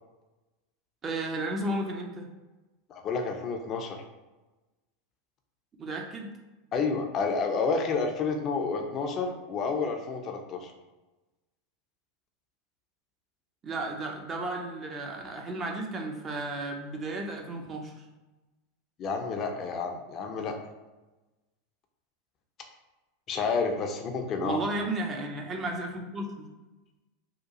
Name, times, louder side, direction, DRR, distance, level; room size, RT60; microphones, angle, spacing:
voice 1, 1.0-2.3 5.8-6.3 13.6-18.1 24.4-26.5, right 2 dB, 30° right, 2 dB, 0.5 m, -33 dB
voice 2, 2.9-4.0 6.7-10.7 19.0-20.6 23.3-24.6, left 4 dB, 35° left, 4 dB, 0.4 m, -30 dB
2.8 x 2.2 x 2.7 m, 1.1 s
figure-of-eight pair, 85°, 0 cm